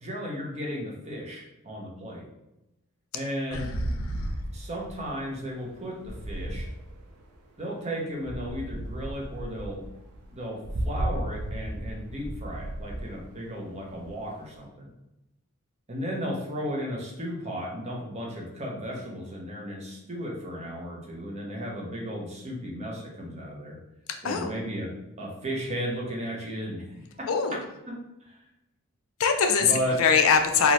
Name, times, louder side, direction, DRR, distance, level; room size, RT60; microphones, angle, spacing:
voice 1, 0.0-2.3 3.1-3.7 4.5-6.7 7.6-9.8 10.3-14.9 15.9-23.8 24.2-24.9 25.2-26.8 27.2-27.3 27.9-28.0 28.3-28.4 29.6-30.0, equal, 30° right, -2 dB, 0.6 m, -34 dB
voice 2, 3.5-4.4 24.2-24.5 27.3-27.6 29.2-29.7 30.0-30.7, left 6 dB, 65° left, 5 dB, 0.4 m, -23 dB
sound 1, 3.5-7.5 8.2-14.6, right 1 dB, 80° right, 0.4 m, -34 dB
2.7 x 2.4 x 3.1 m, 0.92 s
head